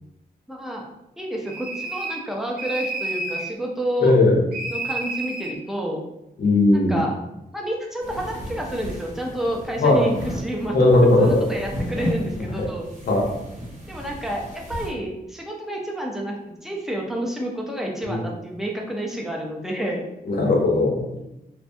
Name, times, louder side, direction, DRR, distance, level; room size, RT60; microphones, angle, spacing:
voice 1, 0.5-0.9 1.2-4.2 4.7-6.0 6.7-7.1 7.5-12.9 13.9-20.1, equal, ahead, -1 dB, 0.5 m, -29 dB
sound 1, 1.4-2.3 2.6-3.5 4.5-5.6, right 2 dB, 80° right, 0.6 m, -30 dB
voice 2, 4.0-4.4 6.4-7.0 9.8-10.1 10.7-11.5 12.4-12.7 13.1-13.3 18.0-18.2 20.2-21.0, left 2 dB, 80° left, -2 dB, 0.8 m, -18 dB
sound 2, 8.0-14.9, equal, 50° right, 0.8 m, -34 dB
2.6 x 2.1 x 2.6 m, 0.88 s
wide cardioid pair, 110°, 16 cm